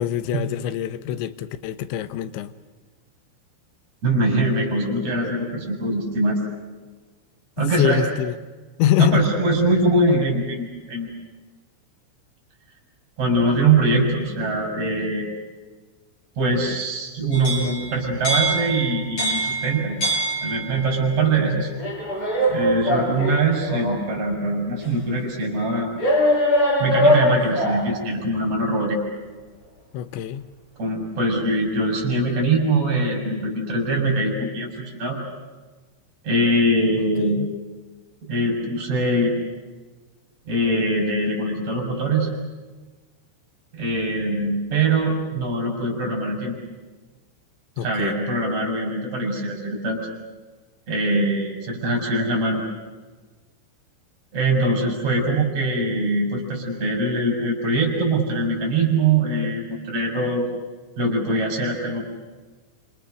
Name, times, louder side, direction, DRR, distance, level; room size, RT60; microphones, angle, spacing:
voice 1, 0.0-2.5 7.8-8.3 8.8-9.3 29.9-30.4 37.2-37.5 47.8-48.2, left 11 dB, 75° left, 3.2 m, -24 dB
voice 2, 4.0-6.4 7.6-8.0 9.0-11.1 13.2-15.3 16.4-20.0 20.4-21.7 22.5-25.9 26.8-29.0 30.8-35.2 36.2-37.4 38.2-39.3 40.5-42.3 43.7-46.6 47.8-50.0 50.9-52.6 54.3-60.5 61.0-62.0, right 2 dB, 35° right, 7.0 m, -22 dB
sound 1, 17.3-20.9 21.8-24.1 24.8-24.9 26.0-27.9, equal, 25° left, 7.2 m, -22 dB
29.5 x 27.0 x 6.4 m
omnidirectional pair, 5.6 m